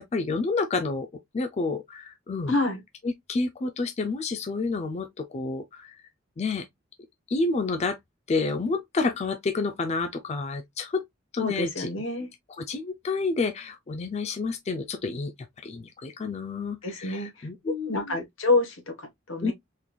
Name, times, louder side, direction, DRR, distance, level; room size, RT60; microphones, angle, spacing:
voice 1, 0.1-1.1 1.3-2.5 3.0-6.0 6.4-6.7 7.3-8.0 8.3-11.0 11.3-11.9 12.6-18.2 19.4-19.5, left 3 dB, 35° left, 0.4 m, -29 dB
voice 2, 2.5-2.8 11.4-12.3 16.8-19.5, left 2 dB, 80° left, 1.2 m, -28 dB
3.7 x 3.2 x 2.2 m
head